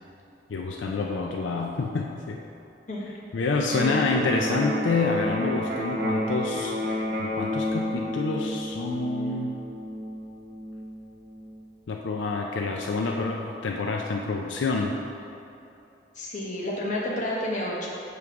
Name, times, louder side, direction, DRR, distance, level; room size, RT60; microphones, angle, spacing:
voice 1, 0.5-2.4 3.3-9.5 11.9-15.0, left 3 dB, 85° left, 0 dB, 0.5 m, -28 dB
Electric guitar, 3.7-11.7, left 1 dB, 50° right, 0.9 m, -31 dB
voice 2, 16.1-17.9, left 1 dB, 40° left, -5 dB, 1.2 m, -30 dB
7.1 x 3.2 x 5.9 m, 2.8 s
head